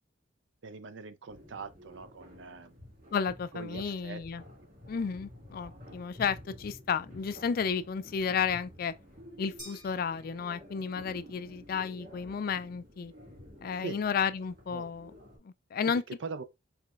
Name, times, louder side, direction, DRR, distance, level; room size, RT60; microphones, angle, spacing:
voice 1, 0.6-2.8 3.5-4.2 4.6-4.7 13.7-14.0 14.7-14.9 16.1-16.4, right 4 dB, 75° right, 0.5 m, -42 dB
sound 1, 1.3-15.4, left 1 dB, 50° right, 1.7 m, -51 dB
voice 2, 3.1-4.4 4.9-8.9 9.4-13.1 13.6-15.1 15.4-16.0, left 6 dB, 50° left, 0.3 m, -32 dB
sound 2, 9.6-11.0, equal, 25° right, 1.6 m, -51 dB
4.8 x 3.3 x 2.3 m
head